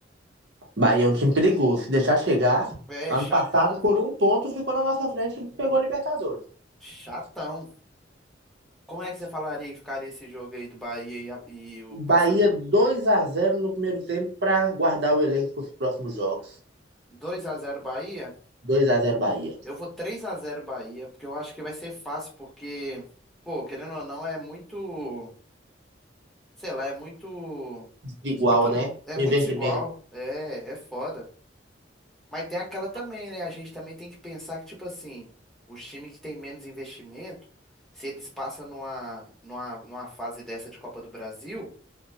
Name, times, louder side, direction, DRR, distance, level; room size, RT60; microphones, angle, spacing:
voice 1, 0.8-2.7 3.1-6.4 11.9-15.5 15.8-16.4 18.7-19.5 28.2-28.9 29.2-29.8, equal, 60° right, 0 dB, 0.8 m, -23 dB
voice 2, 2.9-3.8 6.8-7.7 8.9-12.4 17.1-18.4 19.6-23.0 23.4-25.3 26.6-27.9 28.5-31.3 32.3-35.3 35.7-37.4 37.9-41.7, equal, ahead, -5 dB, 1.0 m, -35 dB
2.7 x 2.2 x 2.6 m, 0.42 s
head